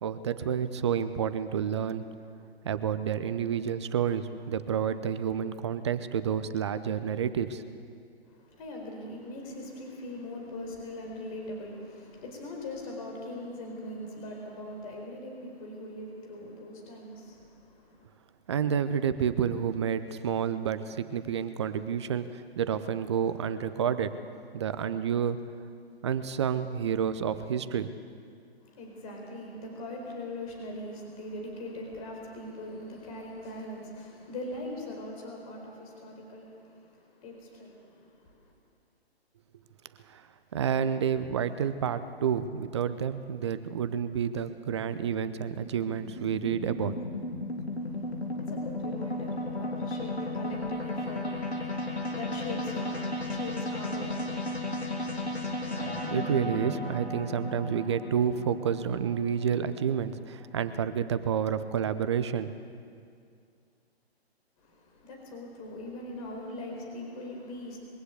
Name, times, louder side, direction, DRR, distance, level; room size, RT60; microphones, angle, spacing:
voice 1, 0.0-2.0 2.6-7.6 18.5-24.1 24.5-25.4 26.0-27.9 40.1-40.2 40.5-46.9 55.8-62.5, right 8 dB, 25° right, 12 dB, 0.6 m, -29 dB
voice 2, 8.3-18.1 28.6-38.5 47.7-55.6 64.6-67.8, left 1 dB, 35° left, 0 dB, 4.6 m, -41 dB
sound 1, 44.4-60.8, left 2 dB, 85° left, 3.3 m, -35 dB
22.0 x 16.0 x 8.1 m, 2.3 s
figure-of-eight pair, 130°, 32 cm